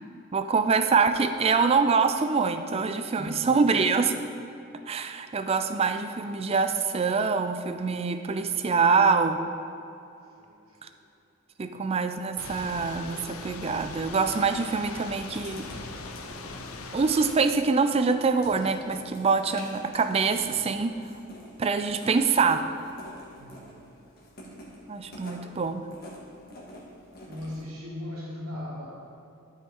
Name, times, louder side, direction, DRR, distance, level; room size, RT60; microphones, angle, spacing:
voice 1, 0.3-4.1 4.9-9.4 10.8-10.9 11.6-15.7 16.9-21.0 21.6-22.6 24.9-25.9, right 5 dB, 30° right, 9 dB, 0.3 m, -25 dB
voice 2, 3.2-3.7 10.4-10.9 23.3-24.4 27.3-28.9, left 1 dB, 85° right, -3 dB, 1.0 m, -40 dB
Thunder / Rain, 12.4-17.4, left 3 dB, 80° left, 0.6 m, -40 dB
Writing, 15.1-27.6, equal, 45° left, 1.7 m, -48 dB
12.5 x 5.4 x 3.6 m, 2.7 s
head